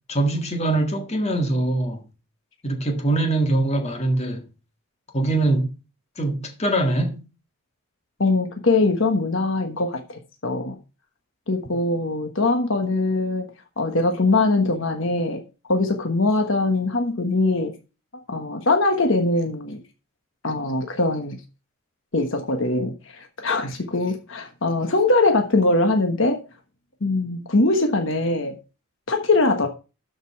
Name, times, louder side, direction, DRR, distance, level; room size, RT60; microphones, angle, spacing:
voice 1, 0.1-2.0 2.6-4.5 5.1-5.7 6.2-7.2, right 2 dB, 30° left, 1.7 m, -23 dB
voice 2, 8.2-10.8 11.5-13.5 13.8-15.4 15.7-17.8 18.3-19.8 20.4-21.4 22.1-26.4 27.0-28.6 29.1-29.7, left 2 dB, 60° left, 1.3 m, -22 dB
12.5 x 5.4 x 4.6 m
head